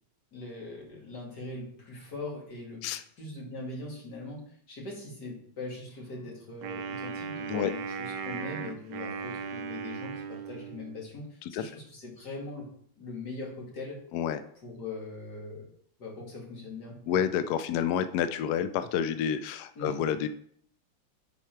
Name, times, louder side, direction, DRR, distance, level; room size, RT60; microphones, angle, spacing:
voice 1, 0.3-2.8 3.2-12.7 13.0-14.0 14.6-15.7 16.0-17.0 19.8-20.0, left 2 dB, 55° left, -2 dB, 2.8 m, -41 dB
Wind instrument woodwind instrument, 6.6-11.1, right 6 dB, 65° right, 1.3 m, -37 dB
voice 2, 17.1-20.3, left 9 dB, 75° left, 11 dB, 0.9 m, -29 dB
10.5 x 4.6 x 4.5 m, 0.63 s
omnidirectional pair, 2.2 m